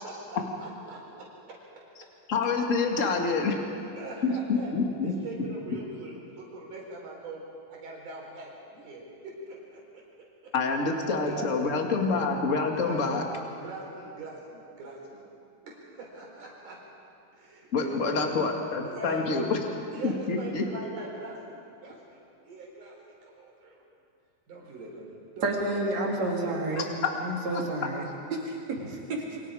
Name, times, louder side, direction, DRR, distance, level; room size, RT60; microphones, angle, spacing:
voice 1, 0.0-1.2 4.0-4.7 5.2-7.4 7.7-9.8 11.3-11.7 12.8-13.2 13.6-15.2 15.6-16.8 17.4-18.3 18.9-19.3 19.9-23.0 23.2-23.8 24.5-25.9 26.2-26.6 28.8-28.9, right 2 dB, 90° right, -3 dB, 5.4 m, -41 dB
voice 2, 2.3-3.6 4.2-5.1 10.5-13.2 17.7-19.6 20.0-20.6 26.7-26.8 27.5-27.6, left 4 dB, 30° left, 1 dB, 2.0 m, -27 dB
voice 3, 25.4-26.9 27.2-28.1 28.4-28.8, right 2 dB, 60° right, -2 dB, 4.0 m, -29 dB
29.0 x 24.0 x 4.9 m, 2.5 s
omnidirectional pair, 3.5 m